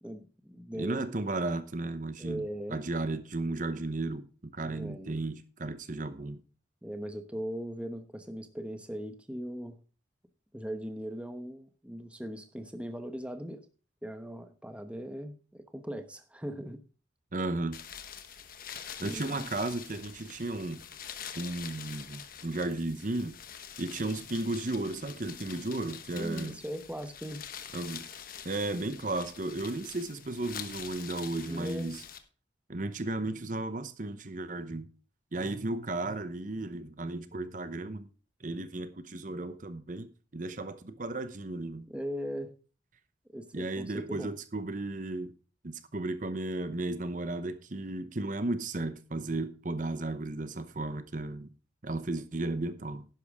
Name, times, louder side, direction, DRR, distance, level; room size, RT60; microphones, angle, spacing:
voice 1, 0.0-1.0 2.2-2.8 4.6-5.2 6.8-9.8 10.5-13.6 14.0-16.8 19.1-19.5 26.1-27.4 31.5-31.9 41.9-42.5 43.3-44.3, equal, 5° right, 0.9 m, -39 dB
voice 2, 0.8-6.4 17.3-17.8 19.0-20.8 21.3-23.4 23.8-26.6 27.7-28.1 28.4-32.0 32.7-34.9 35.3-38.1 38.4-41.9 43.5-45.3 45.6-51.5 51.8-53.1, right 2 dB, 45° right, 0.8 m, -34 dB
sound 1, 17.7-32.2, left 8 dB, 50° left, 1.2 m, -45 dB
11.5 x 10.5 x 3.6 m
head